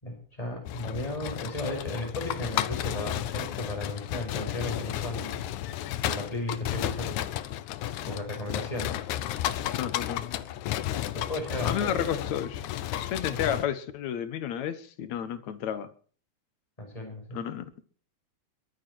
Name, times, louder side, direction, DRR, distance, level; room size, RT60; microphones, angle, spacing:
voice 1, 0.0-5.4 6.0-7.1 8.1-8.9 11.1-12.1 13.3-13.4 16.8-17.4, left 1 dB, 10° left, 6.2 m, -35 dB
sound 1, 0.7-13.7, left 13 dB, 90° left, 2.3 m, -33 dB
voice 2, 9.8-10.4 11.6-12.7 13.0-15.9 17.3-17.8, left 9 dB, 75° left, 2.6 m, -32 dB
22.5 x 9.3 x 4.6 m
omnidirectional pair, 3.4 m